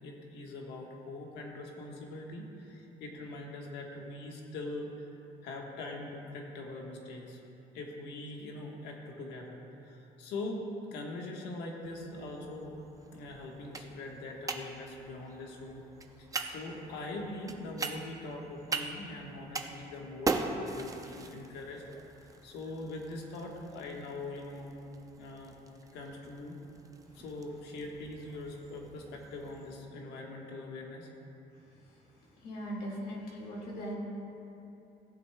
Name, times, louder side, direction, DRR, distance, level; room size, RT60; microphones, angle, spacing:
voice 1, 0.0-5.1 5.4-7.4 7.7-12.8 13.1-15.8 16.2-21.8 22.2-24.7 25.2-25.5 25.9-26.5 27.1-31.1, left 2 dB, 85° left, 0 dB, 1.3 m, -42 dB
sound 1, 11.9-29.7, right 3 dB, 20° right, 0.5 m, -42 dB
voice 2, 32.4-33.9, equal, 65° left, -3 dB, 1.9 m, -39 dB
15.5 x 7.8 x 2.2 m, 2.9 s
cardioid pair, 110°, 17 cm